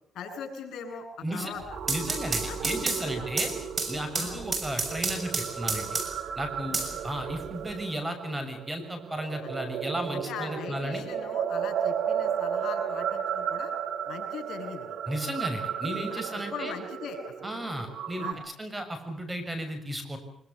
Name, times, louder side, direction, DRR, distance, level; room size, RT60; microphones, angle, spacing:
voice 1, 0.1-1.6 2.3-3.4 4.1-4.4 6.7-6.8 9.4-9.5 10.1-13.7 14.1-15.0 16.1-17.3 18.2-18.4, left 6 dB, 75° left, 5 dB, 7.9 m, -40 dB
sound 1, 1.6-6.3 6.7-7.7, right 4 dB, 40° right, 6.4 m, -31 dB
sound 2, 1.7-18.3, right 8 dB, 70° right, 3.0 m, -34 dB
voice 2, 1.9-3.5 3.9-5.9 6.4-6.8 7.0-11.0 15.1-16.7 17.4-20.2, equal, 15° right, 9 dB, 6.6 m, -34 dB
25.0 x 24.0 x 6.9 m, 0.69 s
cardioid pair, 90°, 0 cm